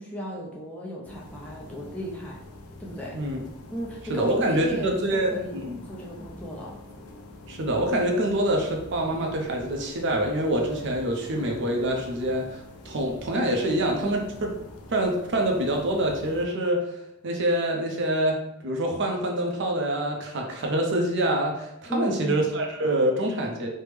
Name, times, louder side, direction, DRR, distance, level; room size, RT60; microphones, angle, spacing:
voice 1, 0.0-2.4 2.8-3.2 3.7-6.8 21.9-22.5, equal, 5° left, -4 dB, 0.4 m, -35 dB
sound 1, 1.0-16.5, left 2 dB, 75° left, 0.5 m, -45 dB
voice 2, 4.1-5.8 7.5-14.5 14.9-16.9 17.2-18.4 18.6-23.7, right 1 dB, 55° right, 1 dB, 0.5 m, -26 dB
3.3 x 2.0 x 3.1 m, 0.84 s
head